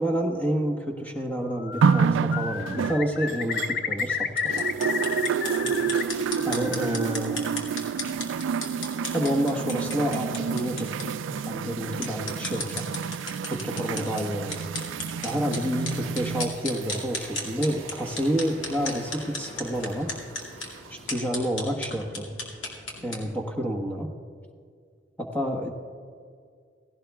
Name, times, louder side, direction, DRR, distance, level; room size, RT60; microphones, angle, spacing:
voice 1, 0.0-4.6 6.4-7.4 9.1-11.2 11.4-12.9 13.5-14.7 15.2-20.1 20.9-22.3 23.0-24.1 25.2-25.7, equal, 10° left, 2 dB, 1.3 m, -29 dB
Bird, 1.5-2.1 2.3-6.0 6.3-7.2, left 6 dB, 50° left, 0.6 m, -31 dB
sound 1, 1.8-4.2 4.5-19.2 20.1-20.2, right 6 dB, 80° right, 0.3 m, -29 dB
sound 2, 4.3-23.2, left 2 dB, 90° left, 2.3 m, -37 dB
17.0 x 16.5 x 2.3 m, 2.1 s
head